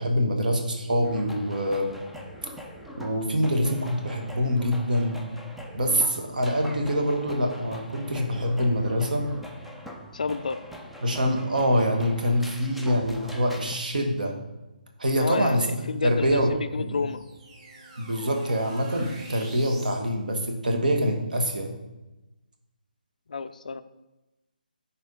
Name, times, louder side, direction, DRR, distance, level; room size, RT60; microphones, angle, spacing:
voice 1, 0.0-2.0 3.0-5.2 5.7-9.3 11.0-14.4 15.0-16.5 16.8-17.0 18.0-21.7, equal, 60° right, 3 dB, 1.6 m, -25 dB
sound 1, 1.0-13.8, equal, ahead, 0.4 m, -43 dB
voice 2, 10.1-10.6 15.2-17.2 23.3-23.8, left 4 dB, 50° left, 12 dB, 0.5 m, -30 dB
sound 2, 16.1-20.0, right 2 dB, 30° right, 1.7 m, -45 dB
10.0 x 4.3 x 3.9 m, 1.0 s
figure-of-eight pair, 145°, 5 cm